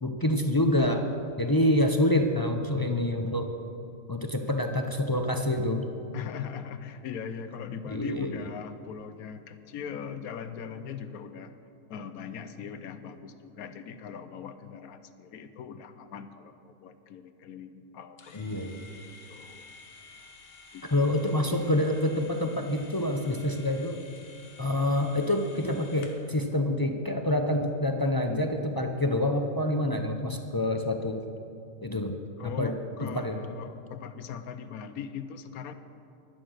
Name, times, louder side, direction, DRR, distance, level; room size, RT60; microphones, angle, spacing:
voice 1, 0.0-1.1 1.4-3.5 4.1-5.8 7.9-8.3 18.3-18.8 20.9-24.0 24.6-31.2 31.8-32.1 32.6-32.7 33.0-33.4, left 1 dB, 30° left, 4 dB, 0.4 m, -27 dB
voice 2, 6.1-11.5 11.9-19.7 20.7-21.2 32.4-35.7, left 7 dB, 85° left, 10 dB, 1.2 m, -40 dB
sound 1, 18.2-26.3, left 4 dB, 45° left, 1.2 m, -51 dB
11.5 x 10.5 x 6.4 m, 2.6 s
omnidirectional pair, 1.5 m